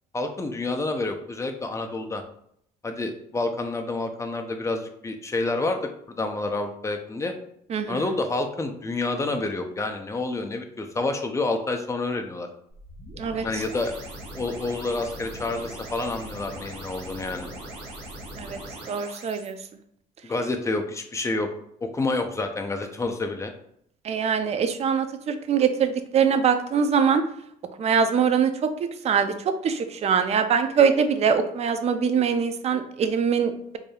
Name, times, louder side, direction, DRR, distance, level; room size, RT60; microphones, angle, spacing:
voice 1, 0.1-2.2 2.8-7.3 7.9-12.5 13.4-13.9 14.3-17.5 20.2-21.5 21.8-23.5, left 2 dB, 15° left, 5 dB, 0.5 m, -28 dB
voice 2, 7.7-8.1 13.2-13.6 18.4-18.6 18.9-19.6 24.0-27.2 27.8-28.7 29.0-33.8, right 6 dB, 40° right, 9 dB, 0.4 m, -23 dB
sound 1, 12.7-19.5, right 1 dB, 85° right, 1.2 m, -40 dB
4.8 x 2.7 x 2.3 m, 0.71 s
cardioid pair, 110°, 17 cm